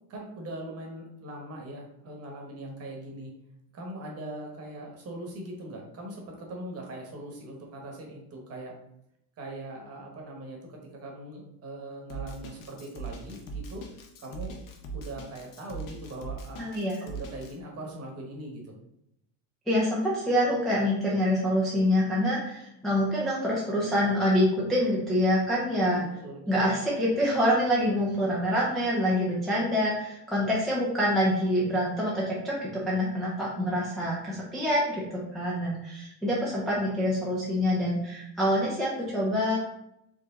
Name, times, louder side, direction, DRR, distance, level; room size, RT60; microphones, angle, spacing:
voice 1, 0.1-3.3 3.7-8.8 9.4-14.6 14.9-16.7 17.0-18.7 26.0-26.7, right 1 dB, 30° right, 0 dB, 1.1 m, -41 dB
Drum kit, 12.1-17.5, right 4 dB, 45° left, 0.8 m, -40 dB
voice 2, 16.6-17.0 19.7-26.0 26.5-39.6, equal, ahead, -7 dB, 0.4 m, -26 dB
4.6 x 3.1 x 3.7 m, 0.80 s
cardioid pair, 170°, 47 cm